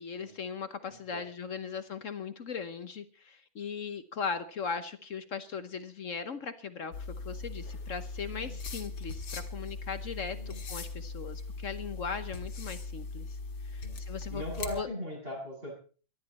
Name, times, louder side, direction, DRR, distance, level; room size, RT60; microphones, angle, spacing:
voice 1, 0.0-13.4 13.6-14.4 14.7-14.9, left 6 dB, 50° left, 11 dB, 1.0 m, -38 dB
voice 2, 0.9-1.2 1.6-1.8 8.3-8.6 10.3-10.6 13.8-14.0 14.3-15.7, left 1 dB, 25° right, -2 dB, 7.9 m, -40 dB
sound 1, 6.9-14.8, left 3 dB, 75° left, 2.6 m, -40 dB
19.5 x 13.0 x 4.2 m, 0.39 s
omnidirectional pair, 2.2 m